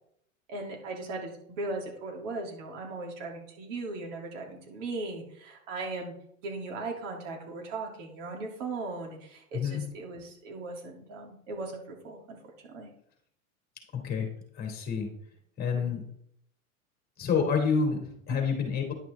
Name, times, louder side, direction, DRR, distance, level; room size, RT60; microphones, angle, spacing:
voice 1, 0.5-6.1 6.4-12.4 12.6-12.9 15.8-15.9 18.3-18.4, right 3 dB, 60° right, 0 dB, 3.0 m, -38 dB
voice 2, 13.9-14.3 14.5-15.1 15.6-16.0 17.2-18.9, left 6 dB, 20° left, 3 dB, 2.8 m, -28 dB
10.5 x 6.0 x 3.6 m, 0.69 s
hypercardioid pair, 110°, 42 cm